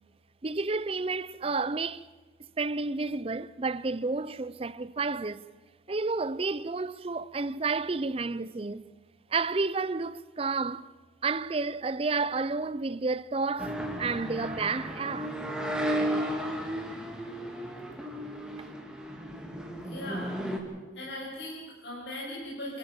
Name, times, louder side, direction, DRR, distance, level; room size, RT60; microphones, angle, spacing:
voice 1, 0.4-2.1 2.6-5.4 5.9-8.9 9.3-10.9 11.2-15.4, right 4 dB, 30° right, 0.5 m, -31 dB
sound 1, 13.6-20.6, equal, 5° right, 2.6 m, -34 dB
voice 2, 19.8-20.4 20.9-22.8, left 1 dB, 70° left, 5.6 m, -39 dB
29.5 x 13.5 x 7.4 m
head